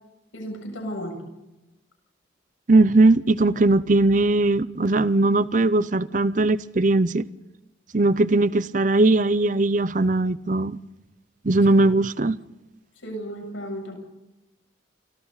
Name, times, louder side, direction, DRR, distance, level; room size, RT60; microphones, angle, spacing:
voice 1, 0.3-1.2 13.0-14.0, equal, 85° left, 7.2 m, -33 dB
voice 2, 2.7-7.3 7.9-10.8 11.4-12.4, right 2 dB, 40° right, 0.6 m, -19 dB
29.0 x 25.0 x 4.1 m
head